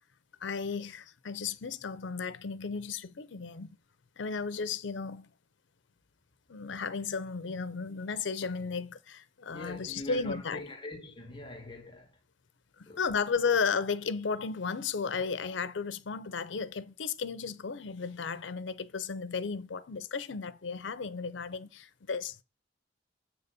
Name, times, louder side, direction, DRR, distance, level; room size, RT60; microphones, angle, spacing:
voice 1, 0.4-3.7 4.2-5.3 6.5-10.6 13.0-22.3, left 5 dB, 90° left, 0.6 m, -34 dB
voice 2, 9.5-12.2 12.9-13.0, left 2 dB, 25° left, 1.2 m, -43 dB
7.5 x 4.0 x 6.7 m
head